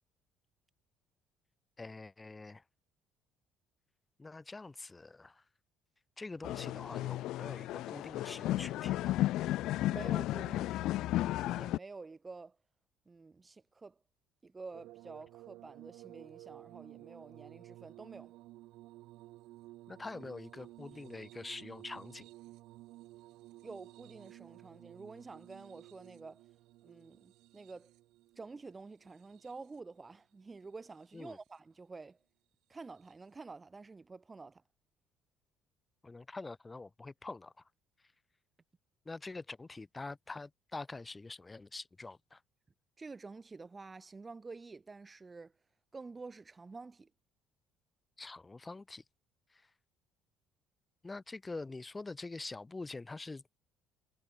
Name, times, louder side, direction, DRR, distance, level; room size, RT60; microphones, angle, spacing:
voice 1, 1.8-2.6 4.2-5.4 6.2-9.2 19.9-22.3 31.1-31.4 36.0-37.5 39.0-42.4 48.2-49.0 49.5-49.7 51.0-53.4, left 3 dB, 15° left, 6.6 m, -45 dB
sound 1, 6.4-11.8, left 15 dB, 70° left, 0.9 m, -34 dB
voice 2, 9.9-12.6 13.1-14.0 14.4-18.3 23.6-26.5 26.8-27.9 28.4-32.2 32.7-34.6 43.0-45.5 45.9-47.1, right 4 dB, 20° right, 2.4 m, -49 dB
sound 2, 14.7-30.0 30.8-31.5 33.0-33.1, right 17 dB, 75° right, 5.4 m, -55 dB
cardioid pair, 135°, 0 cm